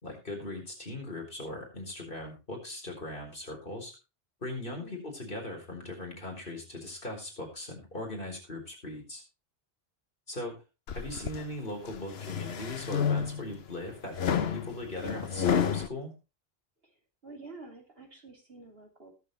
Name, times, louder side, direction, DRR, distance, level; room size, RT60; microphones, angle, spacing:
voice 1, 0.0-3.9 4.4-9.2 10.3-10.5 10.9-16.1, left 1 dB, 60° left, 1 dB, 4.6 m, -39 dB
voice 2, 4.7-5.0 16.8-16.9 17.2-19.1, right 3 dB, 70° right, 2 dB, 3.3 m, -49 dB
sound 1, 10.9-11.4 11.9-13.6 14.1-15.9, left 7 dB, 80° left, 1.1 m, -30 dB
19.5 x 7.8 x 3.2 m, 0.29 s
omnidirectional pair, 1.0 m